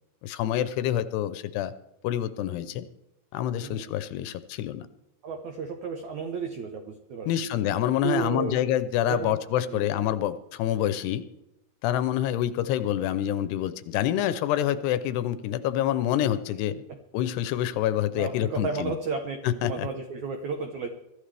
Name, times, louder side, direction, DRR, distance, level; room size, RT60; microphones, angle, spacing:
voice 1, 0.2-1.7 2.0-2.9 3.3-4.9 7.3-11.2 11.8-16.8 17.1-19.0 19.4-19.9, left 11 dB, 80° left, 12 dB, 2.6 m, -27 dB
voice 2, 3.6-4.0 5.2-7.3 8.0-8.7 9.1-10.0 16.7-17.0 18.1-20.9, right 5 dB, 80° right, 5 dB, 1.6 m, -33 dB
23.5 x 13.5 x 3.4 m, 0.88 s
omnidirectional pair, 5.0 m